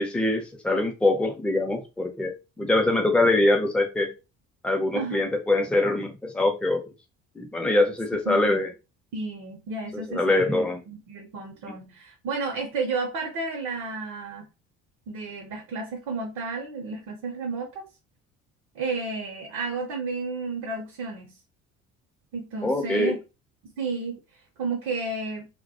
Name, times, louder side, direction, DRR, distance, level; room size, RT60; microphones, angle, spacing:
voice 1, 0.0-4.1 4.6-6.8 7.4-8.7 9.9-10.8 22.6-23.2, left 2 dB, 5° left, 0.5 m, -23 dB
voice 2, 4.9-5.3 8.3-8.7 9.1-14.5 15.1-17.8 18.7-21.3 22.3-23.2 23.8-24.2 24.6-25.5, right 3 dB, 55° right, 0.7 m, -32 dB
2.1 x 2.1 x 2.8 m
figure-of-eight pair, 55°, 39 cm